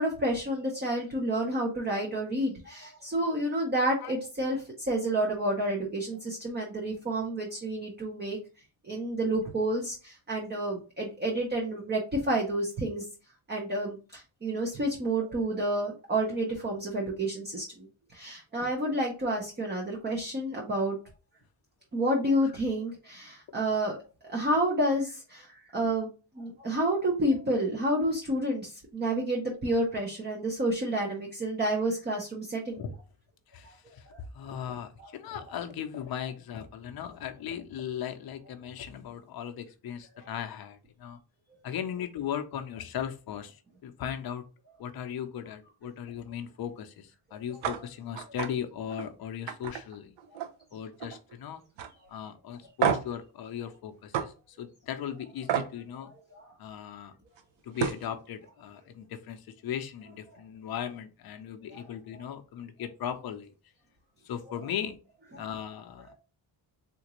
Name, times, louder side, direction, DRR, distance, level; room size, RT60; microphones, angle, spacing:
voice 1, 0.0-8.4 8.8-13.0 13.5-21.0 21.9-24.0 24.2-26.1 26.4-32.8 33.6-33.7 34.1-34.2 35.0-35.1 40.2-40.3 56.3-56.5 61.7-61.8 65.3-65.5 66.1-66.2, right 1 dB, 20° right, 0 dB, 0.5 m, -30 dB
voice 2, 22.3-22.6 32.8-33.0 33.5-34.0 34.3-41.2 41.6-43.6 43.8-44.4 44.8-50.1 50.7-51.6 52.1-56.1 56.6-57.1 57.6-63.5 64.3-65.0 65.4-66.1, left 9 dB, 50° left, 7 dB, 0.5 m, -37 dB
sound 1, 47.6-47.8 48.2-48.5 48.9-49.1 49.5-50.6 50.9-51.3 51.8-51.9 52.8-53.2 54.1-54.3 55.5-55.7 57.4-57.5 57.8-58.1, right 9 dB, 75° right, 0.6 m, -30 dB
3.7 x 2.5 x 2.9 m, 0.34 s
wide cardioid pair, 175°, 48 cm